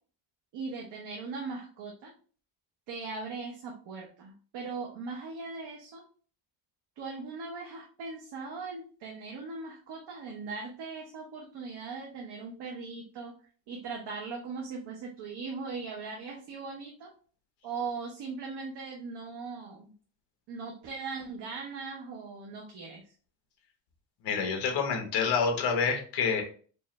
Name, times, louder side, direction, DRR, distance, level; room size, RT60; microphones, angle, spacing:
voice 1, 0.5-2.1 2.9-6.0 7.0-13.3 13.7-17.1 17.6-19.9 20.5-23.0, right 4 dB, 65° right, -1 dB, 0.9 m, -39 dB
voice 2, 24.2-26.4, left 5 dB, 65° left, 3 dB, 1.3 m, -27 dB
4.5 x 2.5 x 3.2 m, 0.42 s
cardioid pair, 180°, 45 cm